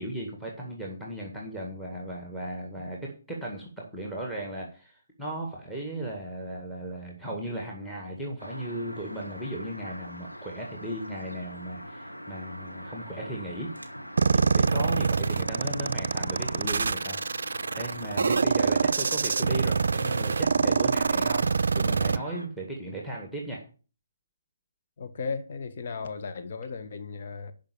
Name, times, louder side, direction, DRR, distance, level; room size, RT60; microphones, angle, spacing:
voice 1, 0.0-13.7 14.3-23.6, right 1 dB, 5° left, 2.0 m, -36 dB
sound 1, 8.4-22.5, equal, 90° left, 2.1 m, -42 dB
sound 2, 14.2-22.2, right 5 dB, 60° right, 0.4 m, -25 dB
voice 2, 25.0-27.5, left 4 dB, 45° left, 1.2 m, -35 dB
12.0 x 5.3 x 7.0 m
figure-of-eight pair, 135°, 0 cm